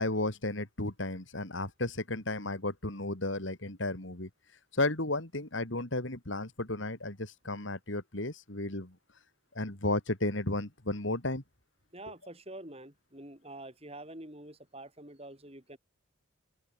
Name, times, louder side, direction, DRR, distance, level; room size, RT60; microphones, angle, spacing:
voice 1, 0.0-4.3 4.7-8.9 9.5-11.4, left 2 dB, 65° left, 3.1 m, -33 dB
voice 2, 11.9-15.8, right 1 dB, 30° right, 3.8 m, -46 dB
open air
head